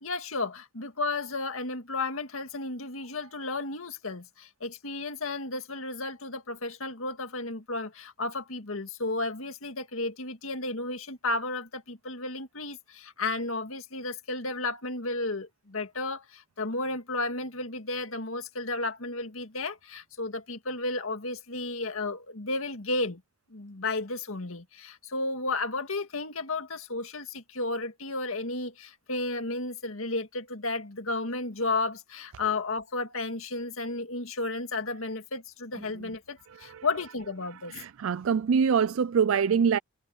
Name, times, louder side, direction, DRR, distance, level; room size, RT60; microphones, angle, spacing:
voice 1, 0.0-23.2 23.5-37.7, left 2 dB, 75° left, 2.0 m, -33 dB
voice 2, 37.7-39.8, right 6 dB, 70° right, 0.4 m, -24 dB
head